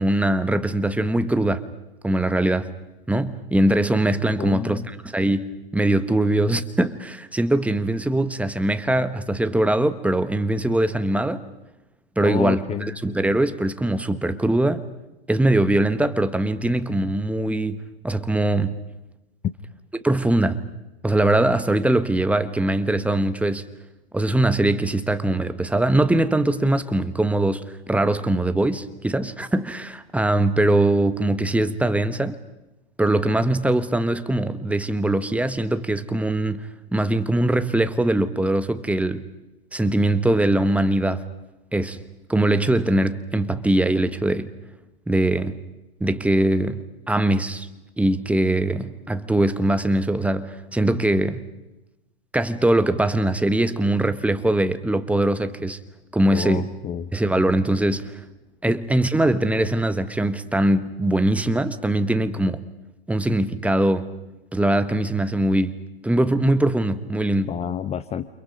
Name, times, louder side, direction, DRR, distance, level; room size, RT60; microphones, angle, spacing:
voice 1, 0.0-1.6 2.0-2.7 3.1-11.4 12.2-14.8 15.3-18.7 19.9-20.6 21.0-23.6 24.1-32.4 33.0-39.2 39.7-41.2 41.7-42.0 42.3-44.5 45.1-45.6 46.0-47.7 48.0-51.4 52.3-55.8 56.1-56.7 57.1-58.2 58.6-62.6 63.1-64.1 64.5-67.6, right 1 dB, 5° right, 1.3 m, -22 dB
voice 2, 4.4-4.9 12.2-13.2 56.3-57.1 58.7-58.8 67.4-68.3, left 9 dB, 20° left, 0.9 m, -29 dB
29.5 x 28.5 x 5.3 m
hypercardioid pair, 115°, 31 cm